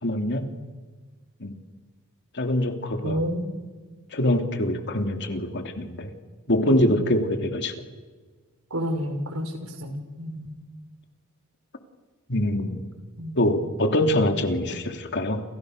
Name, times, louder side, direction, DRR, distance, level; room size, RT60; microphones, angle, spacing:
voice 1, 0.0-0.5 1.4-1.5 2.3-3.2 4.1-6.1 6.5-7.7 12.3-12.8 13.3-15.4, left 1 dB, 55° left, 6 dB, 3.1 m, -24 dB
voice 2, 3.0-3.6 6.8-7.0 8.7-10.7 13.2-13.4, equal, 80° right, 6 dB, 5.4 m, -30 dB
30.0 x 28.5 x 6.6 m, 1.4 s
head